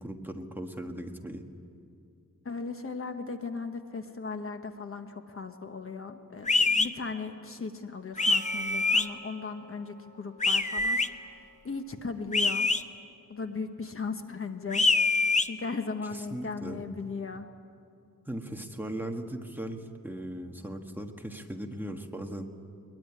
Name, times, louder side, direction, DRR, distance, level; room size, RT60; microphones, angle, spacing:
voice 1, 0.0-1.5 16.1-16.8 18.3-22.5, right 1 dB, 5° right, 3 dB, 1.5 m, -38 dB
voice 2, 2.4-12.7 13.3-14.9 15.1-17.5, left 4 dB, 40° left, 7 dB, 1.1 m, -37 dB
sound 1, 6.5-6.9 8.2-9.1 10.4-11.1 12.3-12.8 14.7-15.5, left 3 dB, 20° left, 0.7 m, -24 dB
Percussion, 8.2-13.1, right 4 dB, 25° right, 5.4 m, -52 dB
21.5 x 21.5 x 9.6 m, 2.4 s
wide cardioid pair, 145°, 33 cm